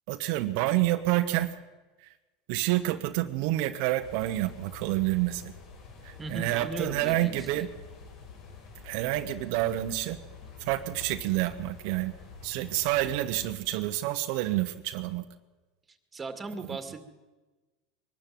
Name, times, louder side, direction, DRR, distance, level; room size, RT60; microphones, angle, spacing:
voice 1, 0.1-1.6 2.0-2.1 2.5-5.5 6.0-7.7 8.8-10.2 10.6-12.1 12.4-15.2, right 15 dB, 65° right, 7 dB, 1.1 m, -28 dB
sound 1, 4.0-13.5, left 5 dB, 55° left, 5.0 m, -47 dB
voice 2, 6.2-7.7 16.1-17.0, right 3 dB, 15° right, 8 dB, 2.2 m, -37 dB
22.5 x 12.5 x 9.3 m, 1.2 s
supercardioid pair, 125°, 0 cm